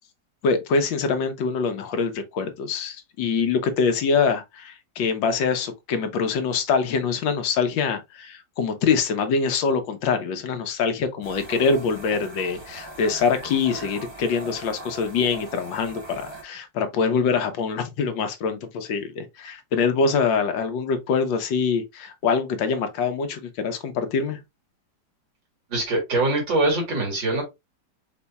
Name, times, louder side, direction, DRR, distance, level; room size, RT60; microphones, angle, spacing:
voice 1, 0.4-24.4, left 5 dB, 85° left, 1.6 m, -24 dB
sound 1, 11.2-16.4, right 3 dB, 20° right, 0.8 m, -40 dB
voice 2, 25.7-27.4, right 2 dB, 85° right, 2.8 m, -23 dB
5.3 x 4.1 x 2.3 m
omnidirectional pair, 2.0 m